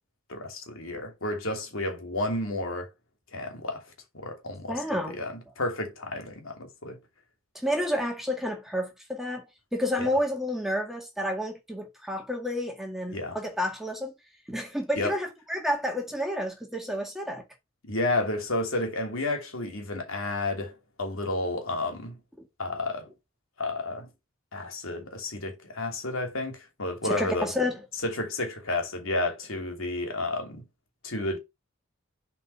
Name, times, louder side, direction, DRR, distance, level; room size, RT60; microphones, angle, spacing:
voice 1, 0.3-2.9 3.3-3.8 4.1-7.0 10.0-10.1 13.1-13.4 15.0-15.1 17.8-22.2 22.6-23.1 23.6-24.1 24.5-27.5 28.0-30.7 31.0-31.4, left 2 dB, 70° left, 2.8 m, -31 dB
voice 2, 4.7-5.2 7.6-9.5 9.7-14.1 14.5-17.4 27.0-27.8, equal, ahead, 1.8 m, -30 dB
7.7 x 4.5 x 5.8 m
head